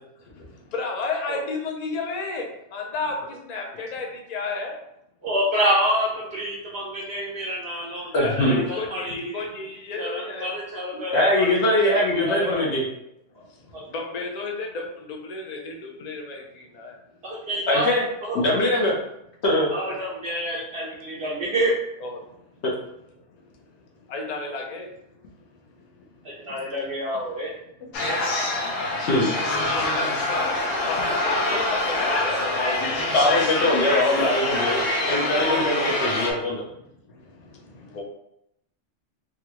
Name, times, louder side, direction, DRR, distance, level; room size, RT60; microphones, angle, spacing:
voice 1, 0.7-2.4 2.7-3.2 3.5-4.7 8.2-10.5 13.9-14.8 15.1-16.9 19.9-20.0 22.0-22.2 24.1-24.9 30.8-32.4 37.9-38.0, left 3 dB, 50° left, 1 dB, 0.5 m, -31 dB
voice 2, 5.2-9.4 10.0-12.6 13.7-13.8 17.2-17.9 18.2-18.5 19.7-21.8 26.2-27.5, equal, 60° right, -4 dB, 0.8 m, -28 dB
voice 3, 8.1-8.6 10.9-12.9 17.7-18.1 18.3-19.0 19.4-19.7 22.6-22.7 29.0-29.3 33.1-36.6, left 1 dB, 65° left, -3 dB, 0.9 m, -22 dB
sound 1, 27.9-36.3, left 2 dB, 90° left, 1.1 m, -25 dB
3.5 x 2.2 x 2.9 m, 0.80 s
omnidirectional pair, 1.3 m